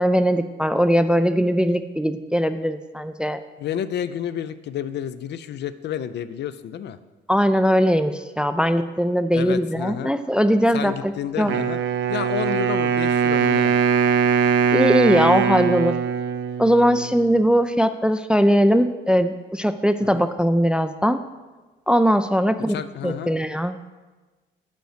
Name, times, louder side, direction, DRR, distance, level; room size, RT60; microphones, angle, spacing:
voice 1, 0.0-3.4 7.3-11.5 14.7-16.0 16.6-21.2 21.9-22.8 23.0-23.8, equal, 5° right, 10 dB, 0.3 m, -20 dB
voice 2, 3.6-7.0 9.3-10.1 10.7-11.8 12.1-13.8 20.1-20.3 22.7-23.3, left 9 dB, 60° left, 12 dB, 0.4 m, -30 dB
Wind instrument woodwind instrument, 11.5-17.4, right 7 dB, 75° right, 0.5 m, -21 dB
7.6 x 5.2 x 5.0 m, 1.2 s
cardioid pair, 90°, 20 cm